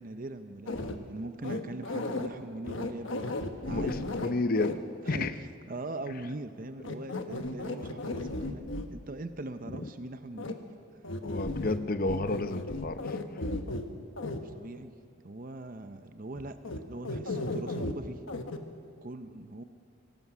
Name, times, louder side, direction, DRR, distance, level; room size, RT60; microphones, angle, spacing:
voice 1, 0.0-3.4 3.6-4.4 5.0-10.6 14.4-14.9 15.2-18.2 19.0-19.6, right 2 dB, 40° right, 9 dB, 0.7 m, -41 dB
sound 1, 0.7-1.0 1.4-2.3 2.6-4.7 5.1-5.2 6.8-8.9 10.4-10.5 11.0-11.8 12.1-13.8 14.2-14.4 16.6-16.8 17.0-17.9 18.3-18.6, left 2 dB, 65° left, 1.2 m, -35 dB
voice 2, 3.7-4.8 5.1-5.3 11.2-13.0, left 2 dB, 45° left, 11 dB, 0.7 m, -30 dB
23.5 x 18.5 x 6.1 m, 2.2 s
head